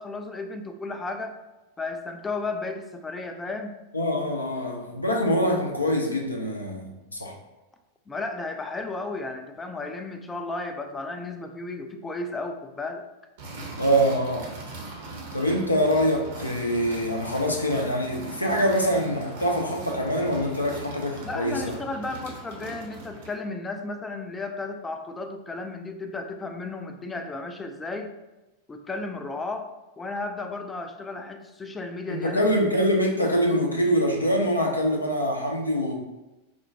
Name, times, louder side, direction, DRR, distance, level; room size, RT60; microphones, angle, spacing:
voice 1, 0.0-1.4 1.8-3.8 8.1-13.0 21.2-28.1 28.7-29.7 30.0-32.8, left 3 dB, 15° left, 6 dB, 0.3 m, -34 dB
voice 2, 3.9-7.3 13.8-14.5 15.3-21.8 32.1-35.9, equal, 85° left, 1 dB, 0.5 m, -24 dB
sound 1, 13.4-23.4, right 2 dB, 55° right, 0.7 m, -40 dB
4.3 x 2.1 x 2.6 m, 1.0 s
figure-of-eight pair, 90°, 0 cm